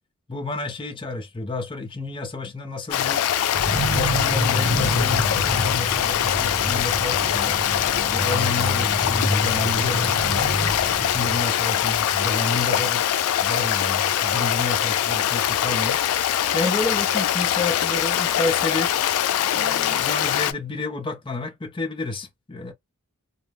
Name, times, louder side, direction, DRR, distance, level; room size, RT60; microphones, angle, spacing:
voice 1, 0.3-3.2 3.9-7.6 8.1-10.5 11.0-13.0 13.4-16.0 16.3-19.0 19.5-22.7, left 3 dB, 25° left, 0.5 m, -30 dB
Stream, 2.9-20.5, left 11 dB, 80° left, 0.3 m, -23 dB
sound 1, 3.5-11.4, right 1 dB, 20° right, 0.6 m, -28 dB
2.2 x 2.0 x 3.3 m
head